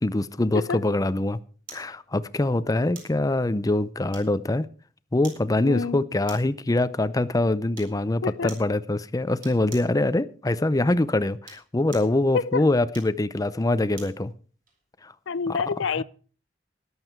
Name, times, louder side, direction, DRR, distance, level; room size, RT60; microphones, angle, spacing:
voice 1, 0.0-1.4 1.7-4.7 5.1-14.3 15.0-15.1, left 2 dB, 20° left, 0.5 m, -24 dB
sound 1, 1.7-1.9 2.9-3.2 4.1-4.6 5.2-5.5 6.3-6.6 7.7-8.0 8.5-8.7 9.4-10.0 11.3-12.2 12.9-14.2 14.7-14.8, right 4 dB, 45° right, 4.7 m, -45 dB
voice 2, 5.6-6.0 8.2-8.5 12.3-12.7 15.3-16.0, left 5 dB, 90° left, 0.5 m, -27 dB
13.5 x 11.5 x 4.5 m
head